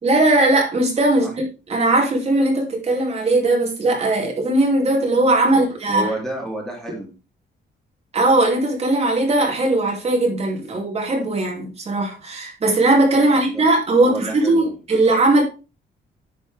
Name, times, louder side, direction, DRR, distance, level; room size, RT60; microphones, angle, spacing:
voice 1, 0.0-6.0 8.1-15.4, right 2 dB, 30° right, 2.7 m, -19 dB
voice 2, 5.5-7.1 13.2-13.6 14.0-14.7, right 1 dB, ahead, 3.0 m, -31 dB
10.5 x 6.4 x 3.4 m
cardioid pair, 165°, 19 cm